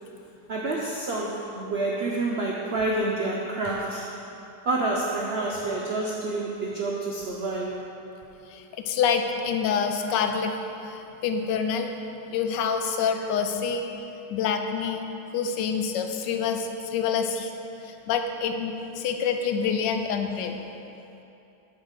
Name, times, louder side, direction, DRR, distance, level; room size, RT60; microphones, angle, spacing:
voice 1, 0.5-4.1 4.6-7.8, right 2 dB, 70° right, -3 dB, 0.6 m, -28 dB
voice 2, 8.5-10.5 10.8-11.9 12.3-13.8 14.3-15.1 15.3-17.5 17.8-20.6, left 6 dB, 85° left, 5 dB, 1.2 m, -27 dB
7.1 x 4.4 x 6.5 m, 2.9 s
omnidirectional pair, 1.9 m